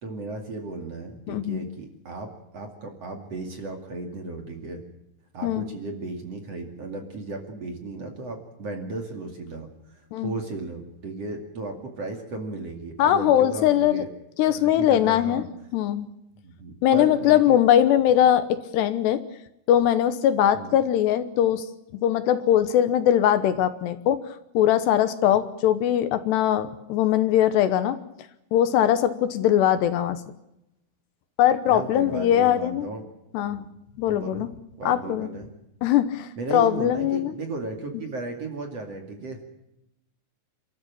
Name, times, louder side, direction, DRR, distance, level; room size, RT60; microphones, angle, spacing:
voice 1, 0.0-4.8 5.3-14.1 14.5-15.4 16.4-17.6 20.5-20.7 31.7-33.0 33.6-33.7 34.1-34.5 34.8-35.5 36.4-39.4, right 3 dB, 40° right, 4 dB, 2.9 m, -35 dB
voice 2, 1.3-1.7 5.4-5.7 10.1-10.3 13.0-14.0 14.4-15.4 15.7-16.1 16.8-19.2 19.7-21.7 21.9-24.2 24.5-28.0 28.5-30.2 31.4-32.9 33.3-33.6 34.0-34.5 34.9-35.3 35.8-37.3, left 11 dB, 75° left, 12 dB, 3.0 m, -21 dB
28.5 x 13.5 x 8.8 m, 0.85 s
omnidirectional pair, 5.2 m